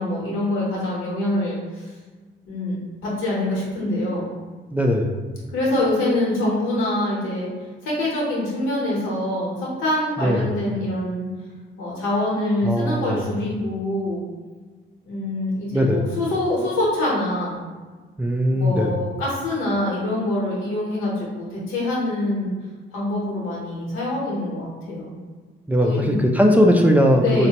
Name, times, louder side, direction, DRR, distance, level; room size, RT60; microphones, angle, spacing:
voice 1, 0.0-1.9 2.5-4.3 5.5-7.5 7.8-11.3 11.8-14.2 15.0-17.6 18.5-22.5 22.9-25.2 25.8-26.2 27.2-27.5, left 1 dB, 85° left, -5 dB, 1.0 m, -25 dB
voice 2, 4.7-5.2 10.2-10.5 12.6-13.3 15.7-16.1 18.2-19.1 25.7-27.5, equal, 10° right, 1 dB, 0.3 m, -19 dB
4.0 x 2.1 x 2.8 m, 1.4 s
cardioid pair, 90°, 20 cm